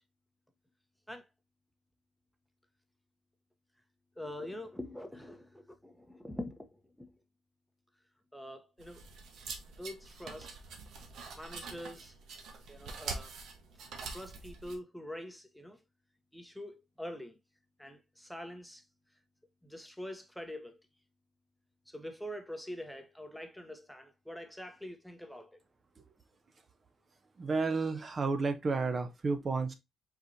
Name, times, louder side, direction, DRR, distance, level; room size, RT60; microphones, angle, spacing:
voice 1, 4.2-7.1 8.3-9.1 9.8-10.6 11.3-12.2 12.7-13.4 14.1-15.8 16.3-17.4 17.8-18.8 19.6-20.8 21.9-25.6, left 1 dB, 5° left, 0.9 m, -44 dB
sound 1, 8.8-14.7, right 4 dB, 75° right, 1.2 m, -45 dB
voice 2, 27.4-29.7, right 4 dB, 35° right, 0.8 m, -31 dB
4.8 x 4.1 x 2.7 m
cardioid pair, 90°, 0 cm